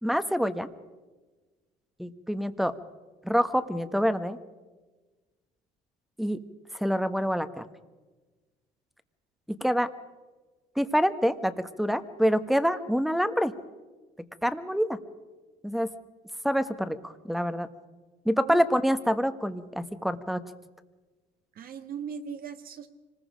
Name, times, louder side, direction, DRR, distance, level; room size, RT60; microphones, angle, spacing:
voice 1, 0.0-0.7 2.0-2.7 3.2-4.4 6.2-6.4 6.7-7.6 9.6-9.9 10.8-13.5 14.4-15.0 15.6-15.9 16.4-17.7 18.2-20.4, equal, ahead, 11 dB, 1.1 m, -26 dB
voice 2, 21.5-22.9, right 7 dB, 60° right, 8 dB, 1.7 m, -38 dB
26.0 x 20.0 x 5.1 m, 1.3 s
cardioid pair, 110°, 17 cm